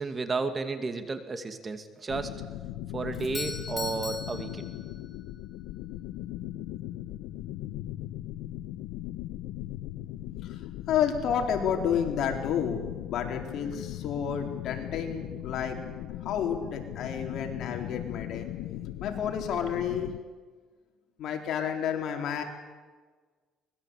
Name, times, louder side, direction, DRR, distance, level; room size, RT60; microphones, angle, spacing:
voice 1, 0.0-2.3 2.9-4.7, right 4 dB, 30° right, 8 dB, 2.4 m, -32 dB
sound 1, 2.1-20.2, left 14 dB, 85° left, 0.9 m, -38 dB
Doorbell, 3.1-5.3, left 3 dB, 20° left, 4.6 m, -39 dB
voice 2, 10.4-12.8 13.1-15.8 16.2-18.5 19.0-20.1 21.2-22.4, left 8 dB, 60° left, 3 dB, 4.2 m, -30 dB
24.5 x 21.0 x 8.4 m, 1.4 s
cardioid pair, 110°, 0 cm